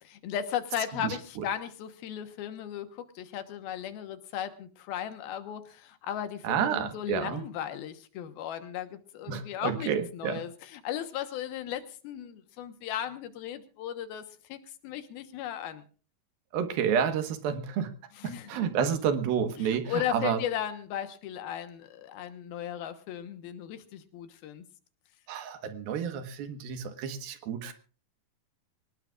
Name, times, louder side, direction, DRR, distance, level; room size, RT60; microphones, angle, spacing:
voice 1, 0.0-14.2 14.5-14.6 14.8-15.8 18.1-18.9 19.6-24.6, left 10 dB, 85° left, 9 dB, 3.1 m, -36 dB
voice 2, 0.9-1.4 6.4-7.4 9.3-10.4 16.5-17.9 18.2-20.4 25.3-27.7, right 7 dB, 85° right, 8 dB, 3.2 m, -30 dB
24.0 x 19.0 x 2.5 m, 0.38 s
omnidirectional pair, 4.2 m